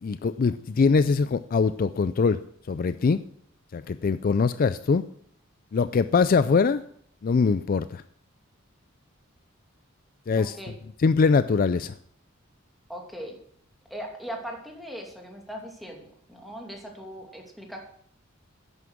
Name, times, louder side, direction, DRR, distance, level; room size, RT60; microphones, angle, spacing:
voice 1, 0.0-2.4 2.7-3.2 3.7-5.0 5.7-6.8 7.2-8.0 10.3-10.6 11.0-11.9, left 5 dB, 45° left, 13 dB, 0.4 m, -22 dB
voice 2, 10.4-10.7 12.9-13.4 13.9-17.8, equal, ahead, 0 dB, 2.6 m, -39 dB
11.0 x 9.6 x 6.2 m, 0.63 s
head